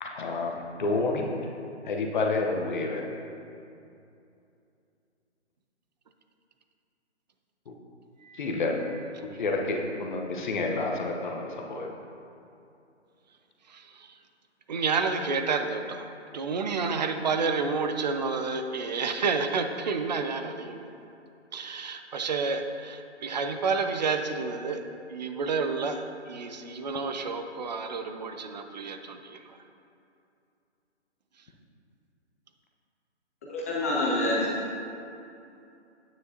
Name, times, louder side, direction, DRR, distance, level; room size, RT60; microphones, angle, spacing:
voice 1, 0.0-1.3 1.8-3.1 7.7-7.8 8.3-8.8 9.4-11.9, left 3 dB, 45° left, 1 dB, 1.1 m, -29 dB
voice 2, 14.7-16.0 16.3-20.9 21.5-24.8 25.1-29.2, right 4 dB, 40° right, 7 dB, 0.5 m, -29 dB
voice 3, 33.5-34.5, left 1 dB, 15° left, -5 dB, 0.6 m, -26 dB
9.4 x 9.3 x 2.9 m, 2.7 s
hypercardioid pair, 155°, 35 cm